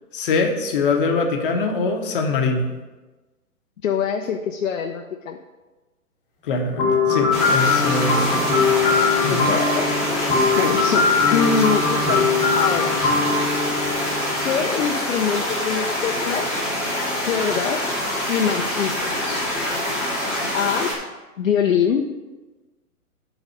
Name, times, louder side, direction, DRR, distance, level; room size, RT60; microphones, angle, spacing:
voice 1, 0.1-2.7 6.4-8.6 9.2-9.4, left 3 dB, 35° left, 3 dB, 1.1 m, -23 dB
voice 2, 3.8-5.4 9.1-12.9 14.4-16.6 17.3-17.9 18.3-19.4 20.5-21.0 21.4-22.1, left 7 dB, 55° left, 3 dB, 0.7 m, -24 dB
sound 1, 6.8-14.6, left 4 dB, 20° left, 1.4 m, -21 dB
sound 2, 7.3-20.9, left 1 dB, ahead, 0.8 m, -25 dB
8.2 x 4.1 x 6.3 m, 1.2 s
hypercardioid pair, 150°, 45 cm